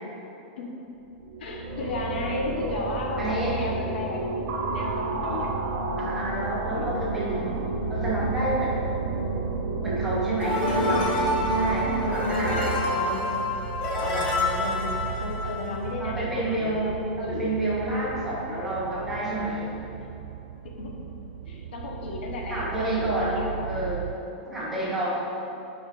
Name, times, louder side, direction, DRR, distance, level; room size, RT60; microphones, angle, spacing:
sound 1, 1.0-12.6, right 2 dB, 40° right, 0.9 m, -30 dB
voice 1, 1.4-5.5 6.7-6.9 10.6-12.2 12.7-13.5 14.0-17.5 20.6-20.9 21.5-23.8, left 2 dB, 75° left, 0 dB, 1.3 m, -35 dB
voice 2, 3.2-3.6 6.0-7.6 7.9-8.8 9.8-11.0 11.5-12.7 16.0-19.7 22.5-23.3 23.6-24.0 24.4-25.1, right 1 dB, 5° right, -8 dB, 1.4 m, -29 dB
sound 2, 4.7-24.1, right 8 dB, 90° right, 0.3 m, -37 dB
sound 3, 10.4-15.9, left 1 dB, 30° left, 1.5 m, -28 dB
6.8 x 5.6 x 5.5 m, 2.9 s
supercardioid pair, 175°, 6 cm